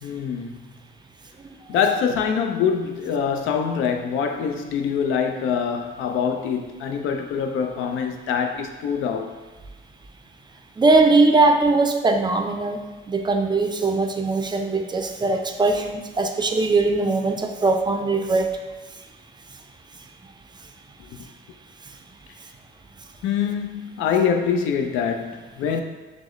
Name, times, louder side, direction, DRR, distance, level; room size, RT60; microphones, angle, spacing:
voice 1, 0.0-0.6 1.7-9.3 21.1-21.2 23.2-25.8, left 7 dB, 85° left, 5 dB, 0.4 m, -24 dB
voice 2, 10.8-12.8 13.1-18.6, right 3 dB, 20° right, 4 dB, 0.4 m, -20 dB
6.0 x 2.0 x 3.1 m, 1.3 s
cardioid pair, 90°, 20 cm